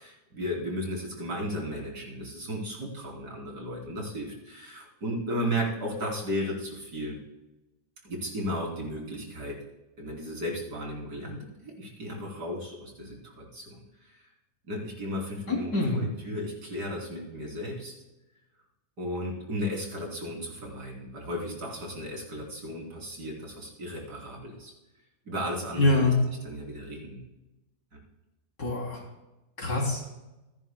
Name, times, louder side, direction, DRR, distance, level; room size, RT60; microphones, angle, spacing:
voice 1, 0.0-7.2 8.0-9.6 10.0-13.8 14.7-17.9 19.0-24.7 25.3-26.1 26.4-27.2 27.9-28.0, equal, 80° right, -2 dB, 3.9 m, -35 dB
voice 2, 15.5-16.0 25.8-26.2 28.6-29.0 29.6-30.1, left 2 dB, 70° left, -1 dB, 3.7 m, -25 dB
26.0 x 10.5 x 2.2 m, 1.0 s
omnidirectional pair, 1.7 m